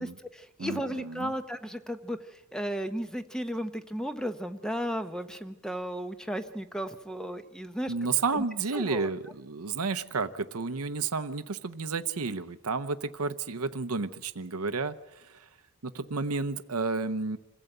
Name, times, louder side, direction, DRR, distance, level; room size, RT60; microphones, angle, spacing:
voice 1, 0.0-7.9 8.3-8.4 8.7-9.1, equal, 5° left, 8 dB, 0.9 m, -34 dB
voice 2, 0.6-1.3 7.9-15.5 15.8-17.4, right 4 dB, 80° right, 10 dB, 0.8 m, -31 dB
27.0 x 16.0 x 8.0 m, 1.1 s
head